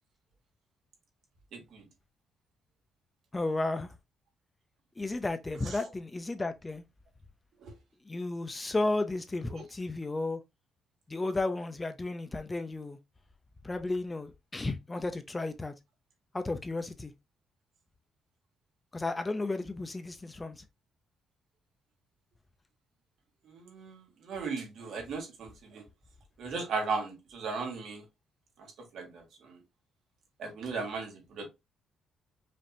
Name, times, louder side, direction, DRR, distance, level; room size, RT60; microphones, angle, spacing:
voice 1, 1.5-1.9 5.7-5.8 7.6-7.7 9.5-9.6 23.4-25.8 26.4-28.0 28.9-29.6 30.4-31.5, right 4 dB, 70° right, 1.6 m, -37 dB
voice 2, 3.3-3.9 5.0-6.8 8.1-10.4 11.1-13.0 13.6-15.7 16.3-17.1 18.9-20.6, left 2 dB, 15° left, 0.5 m, -33 dB
5.1 x 2.7 x 2.7 m
cardioid pair, 120°, 0 cm